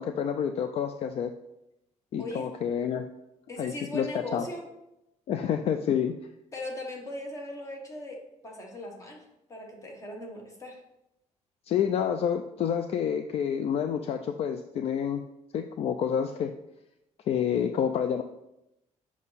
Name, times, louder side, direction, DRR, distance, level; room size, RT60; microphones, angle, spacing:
voice 1, 0.0-1.3 2.1-3.0 3.6-4.1 4.3-4.5 5.3-6.2 11.7-15.3 15.5-16.5 17.3-18.2, left 8 dB, 55° left, 8 dB, 0.4 m, -28 dB
voice 2, 2.2-2.5 3.5-4.7 6.5-10.8, left 1 dB, 25° left, 1 dB, 1.3 m, -39 dB
7.5 x 6.1 x 4.1 m, 0.88 s
cardioid pair, 175°, 13 cm